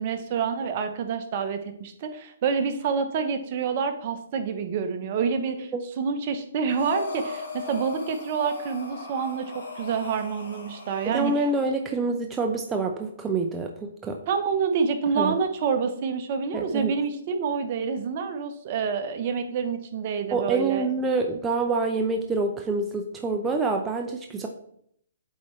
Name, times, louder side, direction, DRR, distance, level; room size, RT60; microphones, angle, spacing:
voice 1, 0.0-5.7 6.0-11.3 14.3-20.9, right 6 dB, 45° right, 8 dB, 0.8 m, -27 dB
Breathing, 6.7-11.6, left 4 dB, 75° left, 2.2 m, -38 dB
voice 2, 11.0-14.2 15.1-15.3 16.5-16.9 20.3-24.5, right 3 dB, 15° right, 3 dB, 0.5 m, -26 dB
8.2 x 4.3 x 3.1 m, 0.69 s
hypercardioid pair, 140°, 0 cm